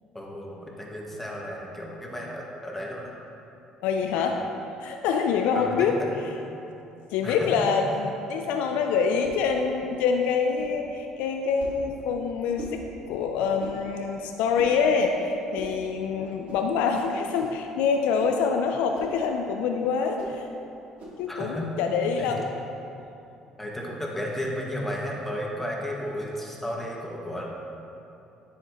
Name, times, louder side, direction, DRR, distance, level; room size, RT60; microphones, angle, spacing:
voice 1, 0.1-3.1 4.2-4.3 5.5-6.1 7.2-7.5 8.4-8.5 21.3-21.7 22.2-22.4 23.6-27.5, equal, 10° left, -3 dB, 1.9 m, -33 dB
voice 2, 3.8-4.4 4.8-5.9 7.1-12.8 13.1-20.5 21.2-22.5 23.0-23.1, left 5 dB, 70° left, 4 dB, 0.5 m, -25 dB
sound 1, 9.2-9.4 10.6-10.8 11.6-11.8 12.6-12.8 13.6-13.8 14.6-14.8 15.5-15.8 16.5-16.6 17.3-17.6 18.1-18.4 18.9-19.2 20.2-20.4 21.0-21.2, right 1 dB, 60° right, 1.8 m, -41 dB
10.0 x 7.7 x 3.1 m, 2.8 s
hypercardioid pair, 55°, 2 cm